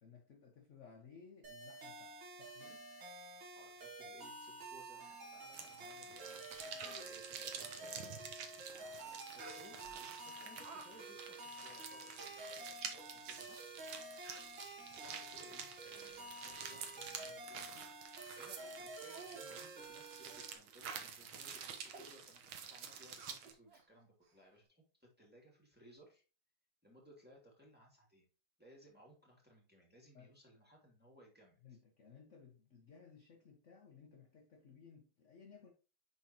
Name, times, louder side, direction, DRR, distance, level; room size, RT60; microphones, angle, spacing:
voice 1, 0.0-2.9 30.1-30.3 31.6-35.7, left 6 dB, 45° left, 1.1 m, -59 dB
sound 1, 1.4-20.6, right 2 dB, 75° right, 2.4 m, -51 dB
voice 2, 3.5-13.6 14.6-26.2 26.8-28.3 28.6-31.6, equal, 5° right, 2.2 m, -63 dB
sound 2, 5.5-23.5, right 7 dB, 90° right, 1.8 m, -49 dB
Speech, 6.1-6.2 6.5-7.1 9.4-9.9 10.3-10.9 11.2-11.3 11.9-12.0 12.2-12.3 13.1-13.2 13.8-13.9 14.2-14.6 15.3-15.5 15.9-16.6 16.9-17.1 17.5-17.6 18.1-18.3 18.6-18.7 19.0-19.4 19.8-19.9 20.3-20.5 20.8-21.0 21.4-21.5 21.9-22.1 23.2-23.8 24.2-24.3, right 4 dB, 40° right, 1.1 m, -56 dB
9.5 x 3.9 x 2.9 m
omnidirectional pair, 2.2 m